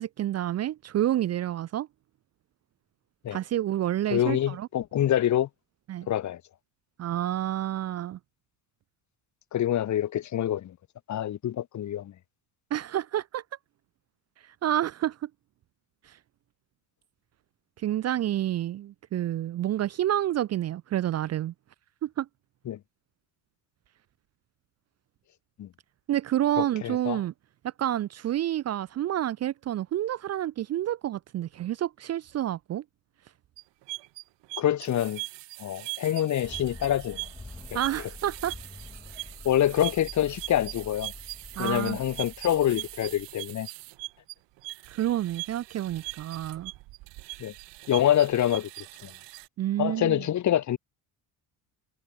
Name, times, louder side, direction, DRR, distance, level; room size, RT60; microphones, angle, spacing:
voice 1, 0.0-1.9 3.3-4.7 5.9-6.1 7.0-8.2 12.7-13.4 14.6-15.3 16.1-16.2 17.8-21.5 22.0-22.3 26.1-27.3 27.6-32.8 37.7-38.5 39.2-39.3 41.6-42.0 44.9-46.7 49.6-50.2, right 12 dB, 35° right, 0.6 m, -29 dB
voice 2, 4.1-5.5 6.1-6.4 9.5-10.8 11.1-12.1 22.7-22.8 25.6-25.7 26.6-27.2 34.6-35.2 35.6-37.3 37.7-37.8 39.4-41.1 41.6-43.7 47.4-47.5 47.9-49.1 49.8-50.8, left 11 dB, 40° left, 2.0 m, -26 dB
sound 1, 33.6-49.5, right 21 dB, 85° right, 1.8 m, -41 dB
sound 2, 36.4-43.3, left 2 dB, 10° left, 3.2 m, -46 dB
cardioid pair, 165°, 43 cm